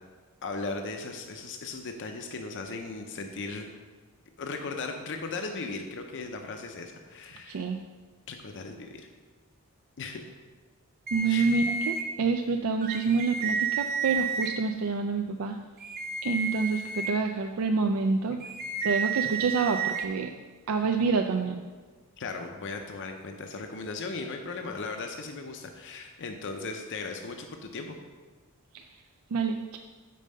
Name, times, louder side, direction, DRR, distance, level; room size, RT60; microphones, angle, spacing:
voice 1, 0.4-3.7 4.4-7.7 8.3-9.1 10.0-10.3 11.3-11.5 22.2-28.0, left 3 dB, 55° left, 4 dB, 0.6 m, -37 dB
voice 2, 7.5-7.8 11.1-15.6 16.2-18.4 18.8-20.3 20.7-21.6 28.7-28.8 29.3-29.8, right 4 dB, 70° right, 4 dB, 0.4 m, -27 dB
sound 1, 11.1-12.0 12.8-14.5 15.8-17.1 18.4-20.0, right 5 dB, 45° right, 0.8 m, -31 dB
5.4 x 5.1 x 6.5 m, 1.4 s
head